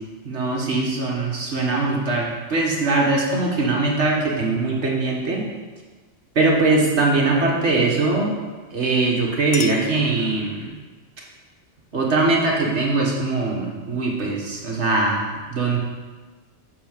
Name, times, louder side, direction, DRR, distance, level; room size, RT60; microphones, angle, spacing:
voice 1, 0.2-5.4 6.4-8.3 8.7-10.7 11.9-15.2 15.5-15.8, right 3 dB, 65° right, -2 dB, 1.9 m, -21 dB
Chink clink, 9.0-10.8, left 7 dB, 80° left, 1.0 m, -35 dB
8.6 x 4.3 x 7.3 m, 1.3 s
omnidirectional pair, 1.3 m